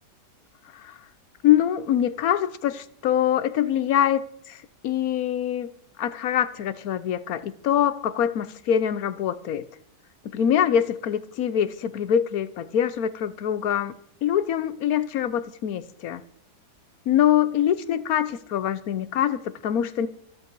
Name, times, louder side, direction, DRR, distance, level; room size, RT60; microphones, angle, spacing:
voice 1, 1.4-4.6 4.8-5.7 6.0-9.7 10.3-14.0 14.2-16.2 17.1-20.1, left 10 dB, 65° left, 1.1 m, -24 dB
24.5 x 8.3 x 4.6 m
omnidirectional pair, 1.9 m